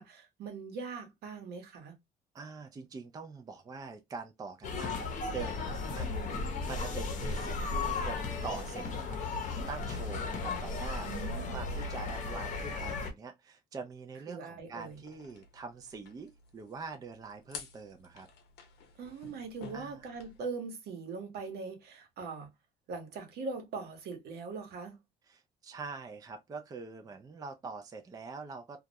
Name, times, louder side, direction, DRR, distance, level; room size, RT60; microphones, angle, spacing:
voice 1, 0.0-1.9 11.0-11.7 14.3-15.0 19.0-22.5 22.9-25.0, right 4 dB, 70° right, 0.9 m, -41 dB
voice 2, 2.3-9.2 9.7-18.3 19.7-20.1 25.3-28.8, right 4 dB, 20° right, 0.4 m, -44 dB
sound 1, 4.6-13.1, left 3 dB, 50° left, 0.7 m, -35 dB
sound 2, 14.8-20.4, left 6 dB, 80° left, 0.7 m, -52 dB
2.3 x 2.0 x 2.6 m
cardioid pair, 110°, 17 cm